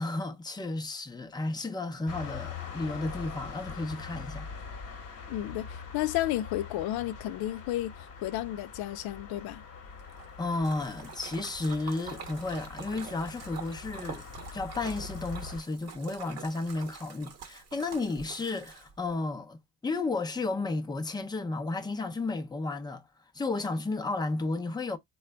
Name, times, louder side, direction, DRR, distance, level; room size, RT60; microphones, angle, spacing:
voice 1, 0.0-4.5 10.4-14.3 14.5-23.0 23.3-25.0, left 3 dB, 10° left, 0.6 m, -33 dB
sound 1, 2.1-15.6, left 6 dB, 40° left, 1.0 m, -43 dB
voice 2, 5.3-7.9 8.2-9.6, left 14 dB, 75° left, 0.6 m, -32 dB
Splash splatter, 10.0-19.1, right 6 dB, 45° right, 1.0 m, -46 dB
3.8 x 2.3 x 3.3 m
cardioid pair, 100°, 37 cm